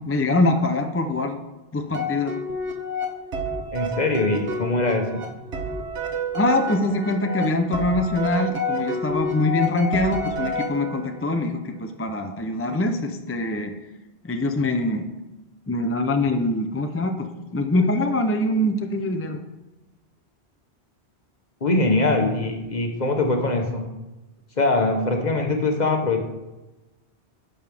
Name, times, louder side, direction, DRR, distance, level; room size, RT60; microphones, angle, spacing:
voice 1, 0.0-1.4 1.7-2.4 6.3-13.7 14.2-15.1 15.7-19.4, left 2 dB, 20° left, 5 dB, 0.4 m, -24 dB
sound 1, 1.9-11.2, equal, 80° right, 1.4 m, -29 dB
voice 2, 3.7-5.2 21.6-23.8 24.6-26.2, left 2 dB, 40° left, 3 dB, 1.2 m, -22 dB
11.0 x 7.0 x 3.5 m, 1.0 s
omnidirectional pair, 1.1 m